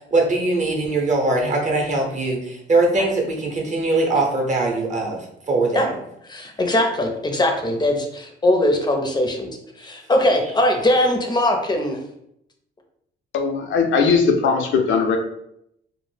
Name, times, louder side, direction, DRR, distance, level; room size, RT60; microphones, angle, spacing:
voice 1, 0.1-5.2 5.5-5.9, right 2 dB, 35° right, 0 dB, 0.7 m, -21 dB
voice 2, 6.3-9.5 9.8-12.0, left 1 dB, 20° left, 3 dB, 0.5 m, -20 dB
voice 3, 13.3-15.2, left 5 dB, 75° left, 4 dB, 0.4 m, -19 dB
2.0 x 2.0 x 3.2 m, 0.76 s
cardioid pair, 90°, 20 cm